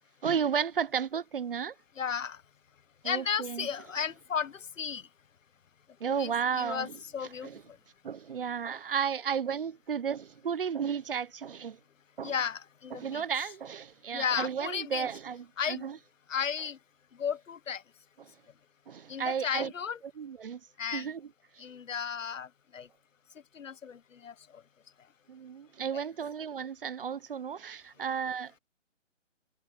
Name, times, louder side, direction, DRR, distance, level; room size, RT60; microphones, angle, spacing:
voice 1, 0.2-1.7 3.0-3.7 6.0-7.0 7.4-7.6 8.0-11.8 12.2-12.3 12.9-16.0 18.2-18.3 18.9-19.7 20.2-20.6 20.9-21.6 25.3-28.6, right 7 dB, 45° right, 0.8 m, -33 dB
voice 2, 2.0-2.4 3.0-5.1 6.1-6.9 7.1-7.5 12.2-13.2 14.1-15.1 15.6-15.8 16.3-16.8 17.2-17.8 19.1-20.0 20.8-21.1 21.6-22.9 23.5-24.6, left 7 dB, 80° left, 0.9 m, -34 dB
hypercardioid pair, 160°, 38 cm